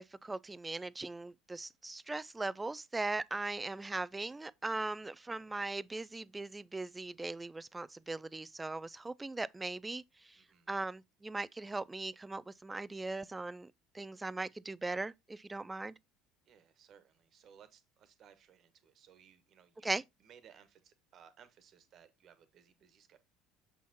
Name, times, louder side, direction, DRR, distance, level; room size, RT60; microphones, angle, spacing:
voice 1, 0.0-10.4 10.7-15.9 19.8-20.0, right 2 dB, 15° right, 0.4 m, -39 dB
voice 2, 10.4-10.7 16.4-23.2, right 8 dB, 45° right, 1.3 m, -61 dB
6.9 x 6.2 x 2.8 m
figure-of-eight pair, 65°, 0 cm